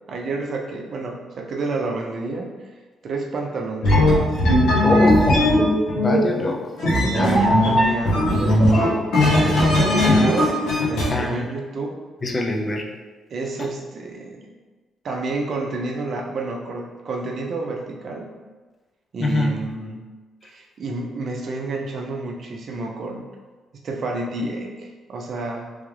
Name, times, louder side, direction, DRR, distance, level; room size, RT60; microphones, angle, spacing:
voice 1, 0.1-2.6 3.0-4.3 4.9-5.2 7.0-8.9 9.6-12.0 13.3-14.5 15.0-18.3 19.1-20.0 20.4-23.3 23.8-25.7, right 3 dB, 45° right, 1 dB, 0.5 m, -30 dB
sound 1, 3.8-11.1, left 1 dB, 85° left, 1.0 m, -18 dB
voice 2, 4.8-5.5 5.9-6.6 7.1-7.3 9.4-9.6 11.1-11.4 12.2-12.8 19.2-19.6, left 2 dB, 25° left, 0 dB, 0.4 m, -23 dB
3.3 x 2.4 x 3.2 m, 1.3 s
cardioid pair, 155°, 0 cm